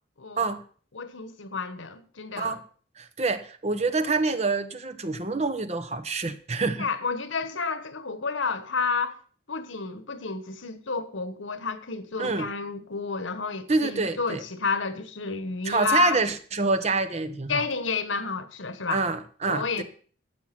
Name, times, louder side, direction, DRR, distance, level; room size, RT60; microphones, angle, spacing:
voice 1, 0.9-2.6 6.7-9.2 9.5-16.2 17.5-19.0 19.5-19.8, left 4 dB, 85° left, 1.3 m, -30 dB
voice 2, 3.0-6.9 12.2-12.5 13.7-14.4 15.6-17.6 18.9-19.8, right 3 dB, 35° right, 0.9 m, -27 dB
12.0 x 7.9 x 6.0 m
head